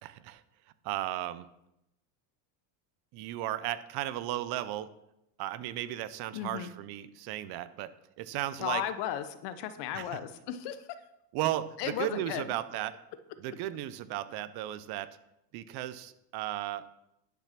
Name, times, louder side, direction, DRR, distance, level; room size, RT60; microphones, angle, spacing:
voice 1, 0.0-0.4 0.8-1.5 3.1-4.9 5.4-7.9 8.2-8.8 9.9-10.1 11.3-12.9 13.4-15.1 15.5-16.8, right 13 dB, 55° right, 15 dB, 0.7 m, -35 dB
voice 2, 6.3-6.7 8.6-10.9 11.8-12.4, left 10 dB, 55° left, 11 dB, 1.1 m, -35 dB
10.5 x 5.9 x 5.9 m, 0.84 s
cardioid pair, 140°, 48 cm